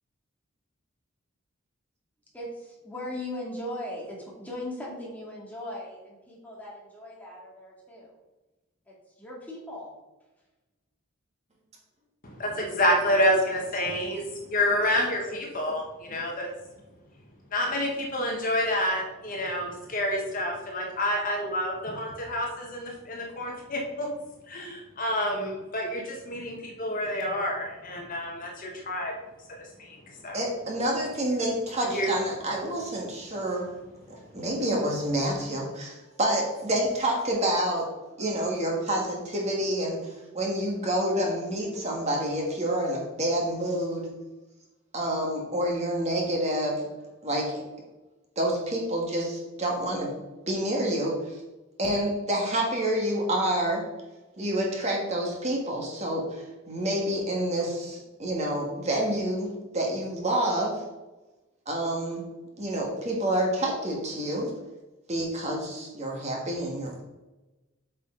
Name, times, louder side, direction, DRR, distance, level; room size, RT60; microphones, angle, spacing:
voice 1, 2.3-8.1 8.9-9.9, left 1 dB, 10° left, -5 dB, 2.3 m, -38 dB
voice 2, 12.2-16.5 17.5-24.1 24.5-29.1 29.5-30.4 31.8-32.2, left 1 dB, 40° left, 0 dB, 1.2 m, -28 dB
voice 3, 30.3-33.7 34.1-37.9 38.2-44.1 44.9-46.8 47.2-47.6 48.3-50.1 50.5-51.3 51.8-53.8 54.4-60.8 61.6-62.2 62.6-64.5 65.1-67.0, right 1 dB, 30° right, -1 dB, 1.7 m, -28 dB
8.4 x 5.6 x 3.8 m, 1.1 s
head